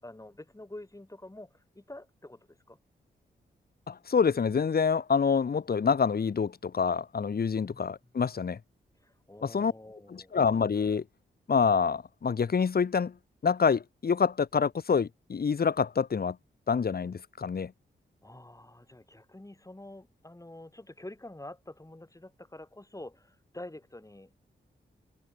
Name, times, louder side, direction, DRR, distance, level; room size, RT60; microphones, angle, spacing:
voice 1, 0.0-2.8 7.7-8.1 9.0-10.4 18.2-24.4, left 1 dB, 15° left, 5.7 m, -47 dB
voice 2, 3.9-8.6 9.4-9.7 10.1-11.0 11.5-13.2 13.4-16.4 16.7-17.7, left 6 dB, 50° left, 1.2 m, -27 dB
supercardioid pair, 45°, 20 cm